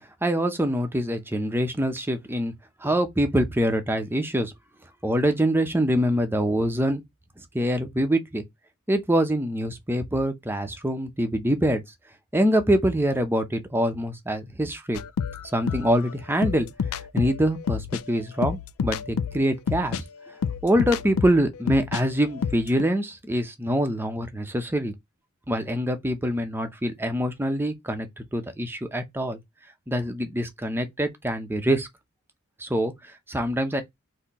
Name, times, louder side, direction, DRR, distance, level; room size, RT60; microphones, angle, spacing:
voice 1, 0.2-2.5 2.8-4.5 5.0-7.0 7.5-8.4 8.9-11.8 12.3-15.0 15.5-16.7 17.1-20.0 20.6-24.9 25.5-28.1 28.3-29.4 29.9-31.9 32.6-32.9 33.3-33.8, equal, 10° right, 0.7 m, -24 dB
sound 1, 14.9-22.0 22.3-22.8, left 6 dB, 65° left, 0.3 m, -29 dB
4.2 x 2.8 x 4.1 m
head